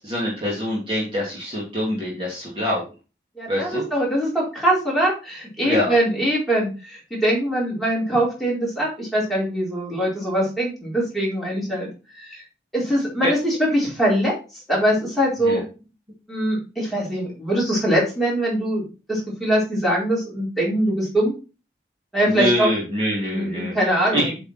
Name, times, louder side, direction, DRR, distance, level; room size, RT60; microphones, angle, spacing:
voice 1, 0.0-2.8 3.5-3.8 5.6-5.9 13.2-13.3 15.5-15.6 22.3-23.7 24.1-24.3, equal, 30° right, -5 dB, 2.5 m, -24 dB
voice 2, 3.4-11.9 12.1-12.4 12.7-15.6 16.3-21.3 22.1-22.7 23.3-24.3, right 1 dB, ahead, -6 dB, 4.4 m, -22 dB
8.2 x 5.5 x 4.3 m, 0.33 s
head